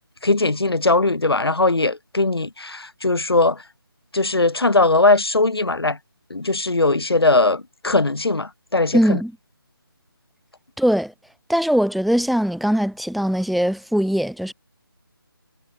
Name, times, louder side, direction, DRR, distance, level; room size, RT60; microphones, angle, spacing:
voice 1, 0.2-3.6 4.1-6.0 6.3-9.2, left 2 dB, 80° left, 3.7 m, -19 dB
voice 2, 8.9-9.3 10.8-11.1 11.5-14.5, equal, ahead, 2.5 m, -20 dB
figure-of-eight pair, 165°, 13 cm